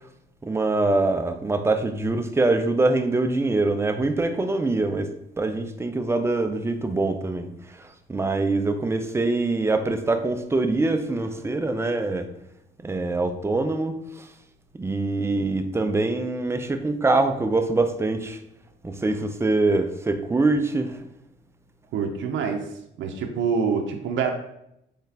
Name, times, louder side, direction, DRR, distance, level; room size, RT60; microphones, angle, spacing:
voice 1, 0.4-5.1 5.4-7.5 7.8-12.3 12.8-14.3 14.8-18.4 18.8-21.0, right 2 dB, 15° right, 7 dB, 0.4 m, -24 dB
voice 2, 21.9-22.7 23.0-24.3, right 6 dB, 70° right, 4 dB, 0.5 m, -25 dB
3.9 x 3.2 x 2.8 m, 0.79 s
cardioid pair, 90°, 20 cm